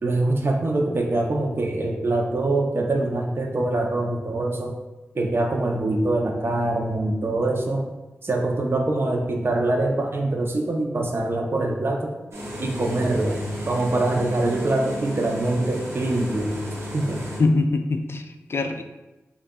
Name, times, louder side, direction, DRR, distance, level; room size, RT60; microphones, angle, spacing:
voice 1, 0.0-4.7 5.1-7.9 8.2-12.1 12.6-13.4 13.7-16.5 16.9-17.3, right 2 dB, 50° right, 1 dB, 0.7 m, -24 dB
sound 1, 12.3-17.4, equal, 80° right, 1.3 m, -33 dB
voice 2, 17.4-18.8, left 3 dB, 55° left, 6 dB, 0.4 m, -23 dB
6.5 x 2.4 x 2.3 m, 1.1 s
cardioid pair, 45°, 5 cm